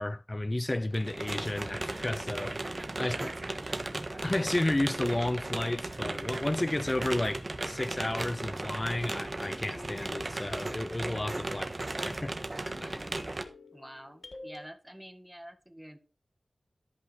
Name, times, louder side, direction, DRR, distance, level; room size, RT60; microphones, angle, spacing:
voice 1, 0.0-3.3 4.2-11.6 12.0-12.3 12.8-13.0, left 1 dB, 35° left, 0.5 m, -32 dB
sound 1, 0.9-13.4, right 2 dB, 50° right, 1.4 m, -36 dB
voice 2, 3.0-4.3 11.5-11.7 13.7-16.0, equal, 10° right, 1.6 m, -48 dB
sound 2, 9.4-14.7, left 2 dB, 60° left, 1.3 m, -50 dB
13.0 x 5.5 x 4.4 m
cardioid pair, 40°, 0 cm